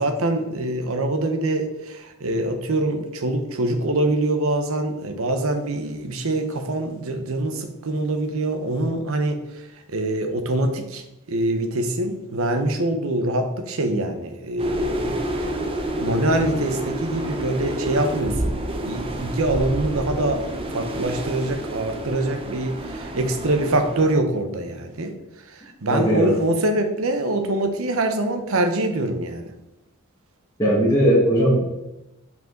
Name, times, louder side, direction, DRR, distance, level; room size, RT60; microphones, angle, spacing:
voice 1, 0.0-9.4 9.9-11.0 11.3-18.5 18.8-20.4 20.7-25.1 25.5-29.5, right 1 dB, 80° right, 6 dB, 0.9 m, -24 dB
sound 1, 14.6-24.2, right 1 dB, 25° right, 0.7 m, -29 dB
voice 2, 25.9-26.3 30.6-31.6, equal, 15° left, -8 dB, 1.6 m, -18 dB
5.4 x 5.3 x 3.8 m, 0.94 s
head